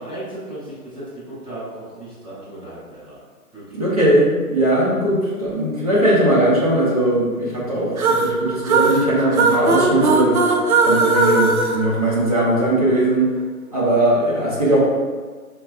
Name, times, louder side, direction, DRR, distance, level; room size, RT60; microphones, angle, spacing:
voice 1, 0.0-3.2 3.5-3.8, right 1 dB, 5° right, -18 dB, 1.0 m, -35 dB
voice 2, 3.7-10.4 10.8-13.3 13.7-14.8, right 1 dB, 25° right, -8 dB, 0.6 m, -19 dB
sound 1, 8.0-12.7, right 3 dB, 65° right, 0.5 m, -19 dB
4.9 x 2.2 x 2.4 m, 1.5 s
figure-of-eight pair, 140°, 46 cm